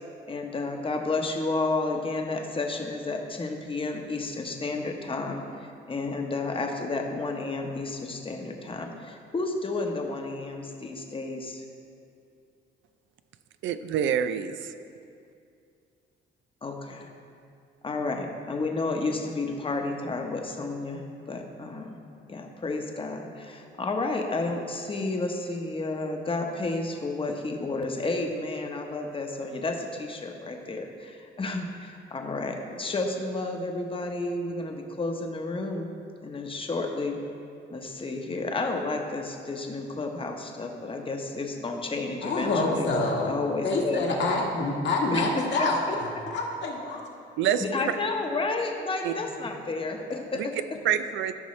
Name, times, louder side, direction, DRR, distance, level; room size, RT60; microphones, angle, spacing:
voice 1, 0.3-5.4 5.9-11.6 16.6-17.1 17.8-22.0 22.3-35.9 36.2-37.2 37.7-42.9 43.3-44.1 45.1-45.7 47.6-50.6, left 3 dB, 25° left, 3 dB, 1.0 m, -31 dB
voice 2, 13.6-14.7 47.4-47.9 49.0-49.1 50.4-50.5 50.8-51.3, right 9 dB, 75° right, 11 dB, 0.4 m, -26 dB
voice 3, 42.2-43.3 43.6-45.8 46.3-47.0, left 2 dB, 60° left, -1 dB, 1.5 m, -26 dB
13.5 x 5.5 x 3.2 m, 2.4 s
cardioid pair, 90°, 20 cm